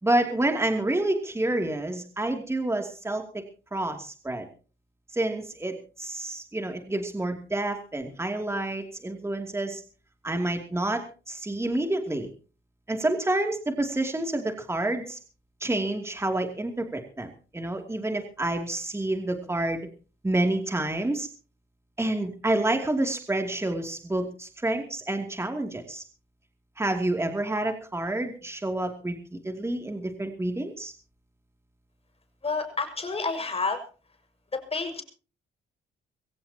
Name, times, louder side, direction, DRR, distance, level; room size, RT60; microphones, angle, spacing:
voice 1, 0.0-3.4 3.7-4.5 5.1-9.8 10.2-12.3 12.9-15.2 15.6-19.9 20.2-21.3 22.0-26.0 26.8-29.2 29.4-30.9, right 1 dB, 15° right, 4 dB, 2.8 m, -28 dB
voice 2, 32.4-33.8 34.5-35.0, left 4 dB, 30° left, 6 dB, 5.9 m, -29 dB
23.0 x 16.5 x 2.9 m, 0.37 s
cardioid pair, 90°, 20 cm